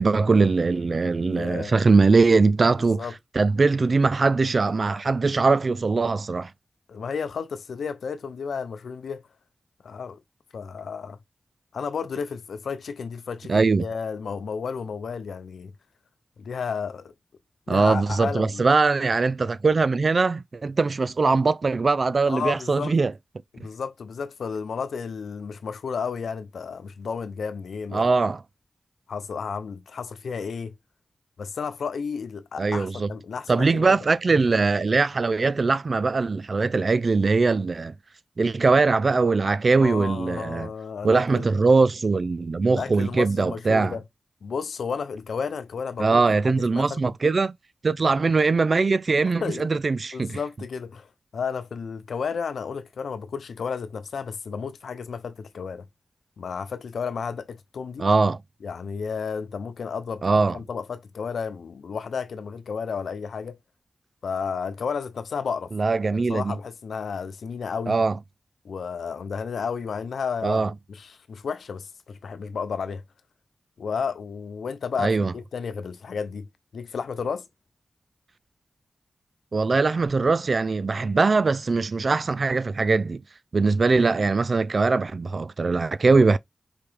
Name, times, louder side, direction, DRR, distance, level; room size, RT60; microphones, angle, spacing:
voice 1, 0.0-3.1 3.3-6.5 13.5-13.8 17.7-23.1 27.9-28.4 32.6-33.1 33.5-37.9 38.4-40.7 41.0-43.9 46.0-47.5 47.8-50.4 58.0-58.4 60.2-60.6 65.7-66.5 67.9-68.2 70.4-70.7 75.0-75.3 79.5-83.2 83.5-86.4, right 4 dB, 60° right, 0.4 m, -21 dB
voice 2, 1.3-1.7 2.9-3.1 6.9-9.2 9.8-10.2 10.5-11.2 11.7-15.7 16.4-17.1 17.7-18.6 22.3-22.9 23.5-28.1 29.1-30.8 31.4-34.0 39.7-41.5 42.7-44.0 44.4-47.0 49.4-49.7 50.1-51.1 51.3-55.8 56.4-58.1 58.6-63.6 64.2-65.7 66.1-68.0 68.6-73.0 73.8-76.5 76.7-77.5, left 6 dB, 90° left, 0.6 m, -32 dB
4.9 x 2.9 x 3.3 m
cardioid pair, 45°, 0 cm